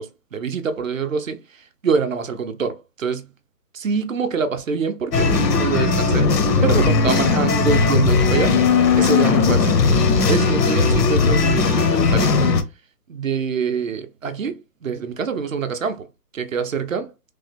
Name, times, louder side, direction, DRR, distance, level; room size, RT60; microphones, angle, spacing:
voice 1, 0.0-3.3 3.7-6.3 6.6-9.8 10.3-12.6 13.1-16.1 16.3-17.1, right 5 dB, 55° right, 0.5 m, -25 dB
sound 1, 5.1-12.6, left 4 dB, 85° left, 0.9 m, -17 dB
3.3 x 2.1 x 3.2 m
hypercardioid pair, 175°, 48 cm